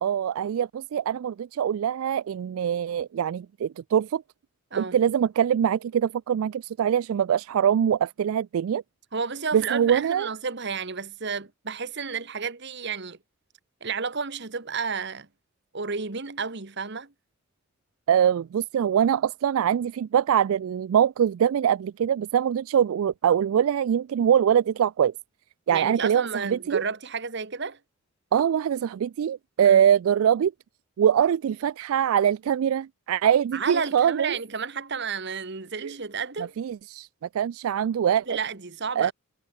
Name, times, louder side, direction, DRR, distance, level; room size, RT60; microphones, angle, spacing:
voice 1, 0.0-4.2 4.8-8.8 9.5-10.3 18.1-25.1 25.7-26.8 28.3-30.5 31.0-34.4 35.8-35.9 36.6-37.1 37.3-38.4 39.0-39.1, right 9 dB, 75° right, 0.3 m, -23 dB
voice 2, 9.1-13.2 13.8-15.3 15.7-17.1 25.7-27.8 29.6-29.8 33.5-36.5 38.3-39.1, right 5 dB, 50° right, 1.3 m, -31 dB
head